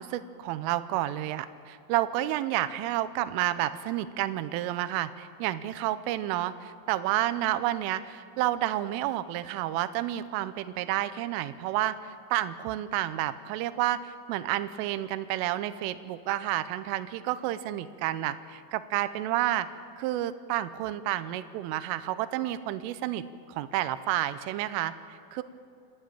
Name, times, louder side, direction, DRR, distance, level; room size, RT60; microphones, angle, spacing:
voice 1, 0.0-19.7 20.0-25.4, right 14 dB, 85° right, 12 dB, 3.3 m, -30 dB
27.5 x 13.0 x 9.0 m, 2.3 s
omnidirectional pair, 5.7 m